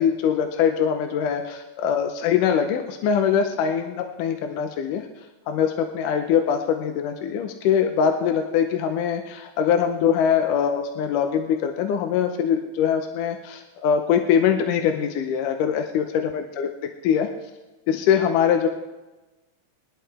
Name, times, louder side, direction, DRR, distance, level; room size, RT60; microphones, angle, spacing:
voice 1, 0.0-5.0 5.5-16.7 17.0-17.3 17.9-18.7, left 8 dB, 85° left, 6 dB, 2.3 m, -22 dB
21.0 x 11.5 x 3.3 m, 1.1 s
omnidirectional pair, 3.7 m